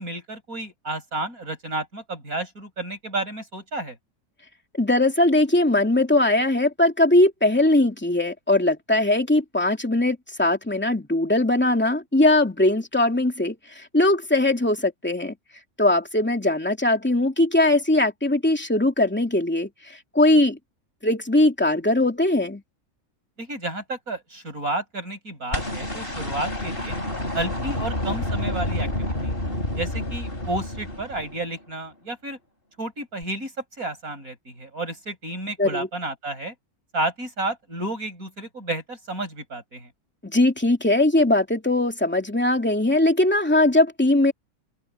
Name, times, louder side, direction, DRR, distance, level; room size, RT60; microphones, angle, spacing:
voice 1, 0.0-4.0 23.4-27.0 27.3-29.4 29.8-32.4 32.8-36.5 36.9-39.9, right 2 dB, 70° right, 8.3 m, -31 dB
voice 2, 4.7-15.3 15.8-20.6 21.0-22.6 35.6-35.9 40.2-44.3, left 2 dB, 5° left, 2.8 m, -20 dB
sound 1, 25.5-31.7 33.2-33.3, left 1 dB, 40° left, 5.4 m, -29 dB
omnidirectional pair, 1.6 m